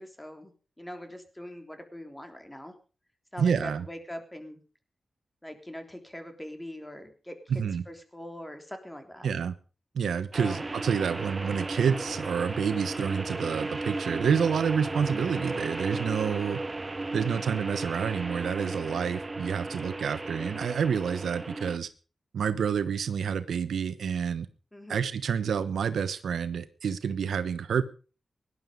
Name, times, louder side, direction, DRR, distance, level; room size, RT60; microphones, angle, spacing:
voice 1, 0.0-2.7 3.3-4.6 5.4-7.4 7.9-9.3 10.3-10.6 24.7-25.0, left 1 dB, 10° left, 6 dB, 3.4 m, -42 dB
voice 2, 3.4-3.9 7.5-7.8 9.2-9.5 9.9-16.6 17.1-21.9 22.3-24.5 24.9-27.8, right 7 dB, 85° right, 13 dB, 1.0 m, -28 dB
sound 1, 10.3-21.8, right 2 dB, 30° right, 0.6 m, -35 dB
18.0 x 11.0 x 5.3 m, 0.37 s
cardioid pair, 70°, 0 cm